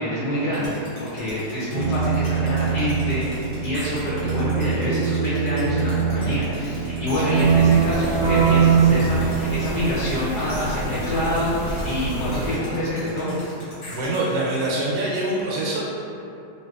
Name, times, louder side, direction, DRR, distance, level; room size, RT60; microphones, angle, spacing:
voice 1, 0.0-13.4, left 1 dB, 70° left, -10 dB, 1.2 m, -26 dB
sound 1, 0.5-14.2, left 1 dB, 50° left, 1.2 m, -41 dB
Keyboard (musical), 1.7-10.2, right 6 dB, 65° right, 1.0 m, -22 dB
sound 2, 7.3-12.6, equal, 90° left, 1.4 m, -30 dB
voice 2, 13.9-15.8, right 2 dB, 85° right, -6 dB, 1.3 m, -24 dB
3.0 x 2.7 x 2.3 m, 2.7 s
omnidirectional pair, 1.9 m